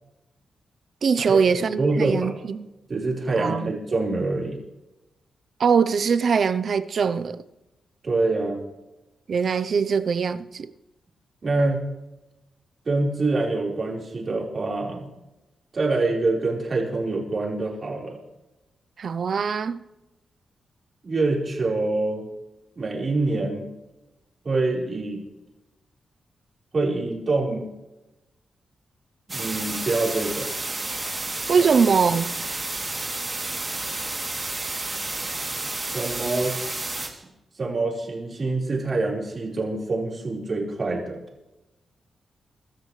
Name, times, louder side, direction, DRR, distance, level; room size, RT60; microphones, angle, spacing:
voice 1, 1.0-2.7 3.4-3.7 5.6-7.4 9.3-10.7 19.0-19.8 31.5-32.3, right 6 dB, 55° right, 0.7 m, -22 dB
voice 2, 1.8-2.3 2.9-4.6 8.0-8.6 11.4-11.8 12.8-15.1 15.7-18.2 21.0-22.3 22.8-23.6 24.4-25.2 26.7-27.7 29.3-30.5 31.6-31.7 35.9-36.6 37.0-37.3 37.6-41.2, right 3 dB, 40° right, 4.5 m, -25 dB
sound 1, 29.3-37.1, right 2 dB, 20° right, 2.9 m, -31 dB
23.0 x 13.0 x 3.3 m
wide cardioid pair, 120°, 0 cm